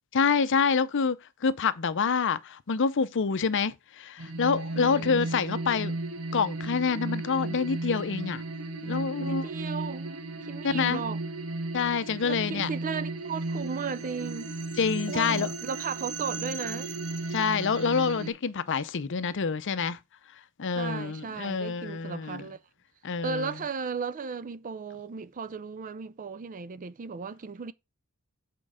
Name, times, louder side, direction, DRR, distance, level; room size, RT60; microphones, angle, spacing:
voice 1, 0.1-6.0 6.3-8.4 8.8-9.4 10.6-11.0 11.7-12.7 14.8-15.5 17.3-20.0 20.6-22.4 23.0-23.5, left 5 dB, 55° left, 0.6 m, -27 dB
sound 1, 4.2-18.3, right 2 dB, 80° right, 1.4 m, -35 dB
voice 2, 4.7-5.2 8.9-11.2 12.2-14.5 15.1-16.9 20.8-22.6 23.2-27.7, right 5 dB, 35° right, 0.4 m, -36 dB
7.7 x 4.5 x 4.8 m
head